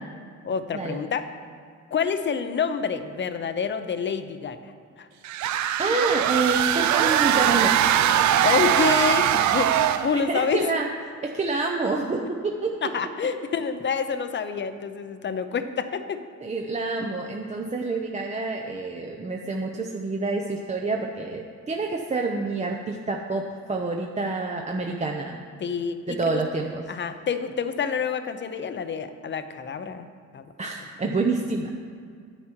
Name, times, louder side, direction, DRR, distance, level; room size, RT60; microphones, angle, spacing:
voice 1, 0.4-1.3 1.9-4.6 5.0-5.1 8.4-10.6 12.8-16.2 25.6-26.4 26.9-30.1 30.3-30.5, left 6 dB, 40° left, 10 dB, 0.7 m, -27 dB
sound 1, 5.2-10.2, right 10 dB, 70° right, 0.5 m, -21 dB
voice 2, 5.8-7.9 10.1-10.9 11.2-12.8 16.4-25.4 26.1-26.8 30.6-31.7, right 3 dB, 25° right, 1 dB, 0.7 m, -28 dB
9.8 x 8.2 x 4.5 m, 2.2 s
cardioid pair, 90°, 30 cm